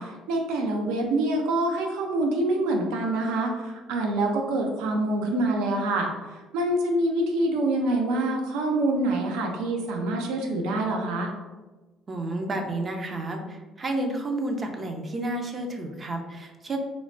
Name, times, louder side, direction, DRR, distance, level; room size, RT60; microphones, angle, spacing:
voice 1, 0.0-6.1 6.5-11.3, right 2 dB, 85° right, 2 dB, 0.5 m, -26 dB
voice 2, 12.1-16.8, right 2 dB, 30° right, 4 dB, 0.4 m, -31 dB
3.1 x 2.1 x 2.6 m, 1.2 s
cardioid pair, 95°, 0 cm